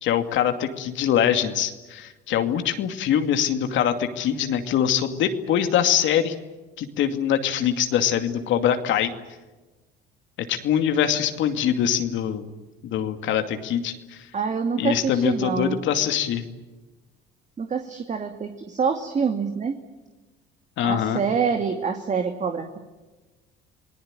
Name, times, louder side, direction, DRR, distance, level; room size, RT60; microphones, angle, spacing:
voice 1, 0.0-6.3 6.8-9.1 10.5-12.5 12.8-14.3 14.8-16.4 20.8-21.2, left 9 dB, 65° left, 7 dB, 2.5 m, -23 dB
voice 2, 14.3-15.8 17.6-19.8 20.8-22.8, right 6 dB, 35° right, 6 dB, 2.3 m, -26 dB
28.0 x 19.5 x 9.0 m, 1.2 s
supercardioid pair, 95°, 21 cm